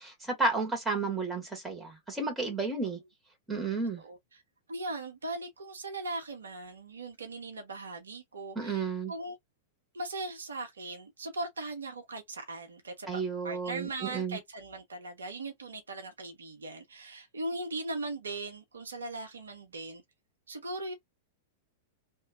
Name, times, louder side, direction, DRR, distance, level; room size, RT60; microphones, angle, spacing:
voice 1, 0.0-3.0 3.5-4.0 8.5-9.1 13.1-14.4, right 4 dB, 10° right, 1.6 m, -32 dB
voice 2, 4.7-9.4 9.9-20.0 20.5-20.9, right 2 dB, 70° right, 0.8 m, -39 dB
3.0 x 2.3 x 2.4 m
figure-of-eight pair, 95°, 0 cm